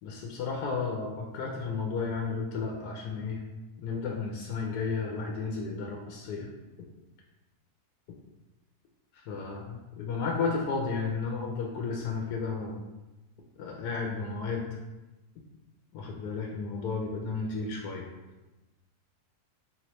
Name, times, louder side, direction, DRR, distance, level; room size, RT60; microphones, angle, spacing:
voice 1, 0.0-3.4 3.8-6.5 9.1-12.8 13.6-14.8 15.9-18.1, left 4 dB, 85° left, -1 dB, 1.1 m, -33 dB
3.7 x 3.0 x 3.0 m, 1.1 s
omnidirectional pair, 1.6 m